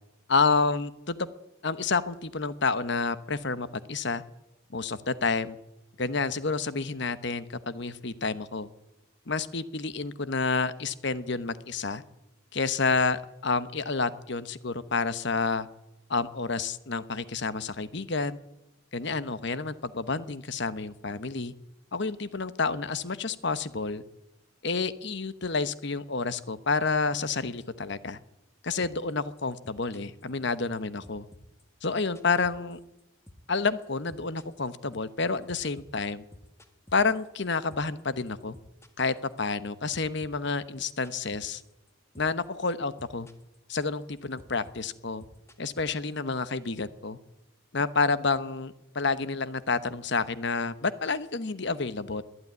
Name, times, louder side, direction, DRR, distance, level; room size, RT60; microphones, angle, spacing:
voice 1, 0.3-1.3 1.6-4.2 4.7-5.6 6.0-8.7 9.3-12.0 12.5-15.7 16.1-18.4 18.9-21.5 21.9-24.0 24.6-28.2 28.6-31.3 31.8-32.8 33.5-36.2 36.9-38.5 39.0-41.6 42.2-43.3 43.7-45.2 45.6-47.2 47.7-52.2, left 4 dB, 55° left, 13 dB, 1.1 m, -29 dB
sound 1, 28.8-29.1 29.4-30.8 31.0-33.0 33.3-33.6 33.8-38.0 38.3-39.7 39.9-41.9 42.2-42.5 42.7-43.6 43.8-46.4, left 1 dB, 15° left, 1.8 m, -53 dB
21.5 x 13.0 x 9.6 m, 0.91 s
head